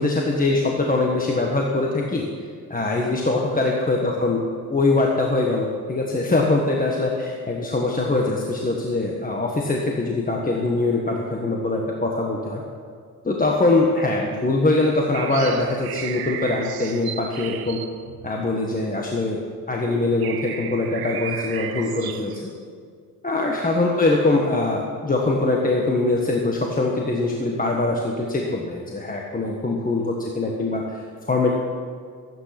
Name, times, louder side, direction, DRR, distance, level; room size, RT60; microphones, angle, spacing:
voice 1, 0.0-2.3 2.7-4.4 4.7-12.6 13.2-17.8 18.2-19.4 19.7-22.5 23.2-31.5, left 2 dB, 20° left, -1 dB, 1.5 m, -22 dB
sound 1, 15.1-19.0 19.6-19.7 20.0-22.5, right 9 dB, 75° right, 0.9 m, -35 dB
15.0 x 9.3 x 6.0 m, 2.2 s
cardioid pair, 90°, 38 cm